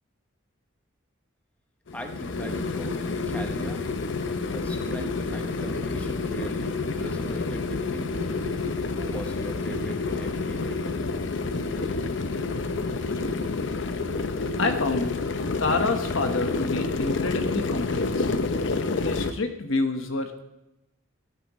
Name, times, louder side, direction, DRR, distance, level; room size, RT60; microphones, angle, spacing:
sound 1, 1.9-19.3, left 3 dB, 60° left, 0.6 m, -29 dB
voice 1, 1.9-3.8 4.5-8.1 8.8-10.9, equal, 5° left, 4 dB, 0.8 m, -40 dB
voice 2, 14.6-15.2 15.6-18.4 19.0-20.5, left 3 dB, 80° left, 6 dB, 1.2 m, -28 dB
12.5 x 12.0 x 3.1 m, 0.92 s
head